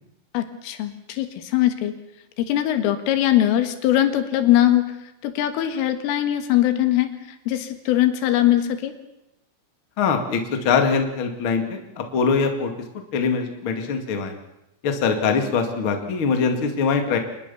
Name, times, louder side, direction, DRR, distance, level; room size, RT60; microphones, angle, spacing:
voice 1, 0.3-1.9 2.5-4.8 5.2-7.1 7.5-8.9, left 13 dB, 75° left, 8 dB, 4.1 m, -21 dB
voice 2, 10.0-12.7 13.1-14.3 14.8-17.2, left 5 dB, 45° left, 4 dB, 1.8 m, -22 dB
25.5 x 20.5 x 7.0 m, 0.90 s
omnidirectional pair, 5.9 m